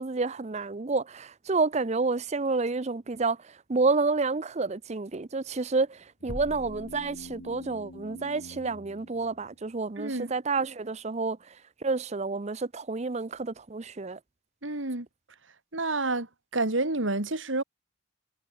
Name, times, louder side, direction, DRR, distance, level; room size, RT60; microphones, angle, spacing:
voice 1, 0.0-3.4 3.7-11.4 11.8-14.2, right 3 dB, 35° right, 0.6 m, -29 dB
sound 1, 6.2-9.9, left 1 dB, 80° left, 4.8 m, -47 dB
sound 2, 6.3-7.9, equal, 65° left, 5.5 m, -43 dB
voice 2, 10.0-10.4 14.6-15.1 15.7-16.3 16.5-17.6, right 2 dB, 75° right, 2.9 m, -29 dB
head